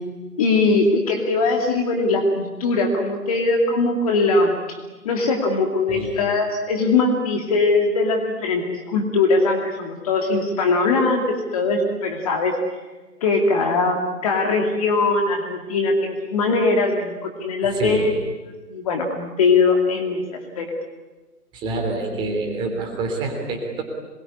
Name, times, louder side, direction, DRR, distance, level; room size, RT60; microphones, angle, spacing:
voice 1, 0.4-4.8 5.0-12.6 13.2-14.0 14.2-18.1 18.7-20.7, left 3 dB, 25° left, 2 dB, 2.5 m, -21 dB
voice 2, 17.7-18.2 21.5-23.8, right 3 dB, 10° right, 2 dB, 3.4 m, -27 dB
27.0 x 22.0 x 9.9 m, 1.2 s
figure-of-eight pair, 160°, 47 cm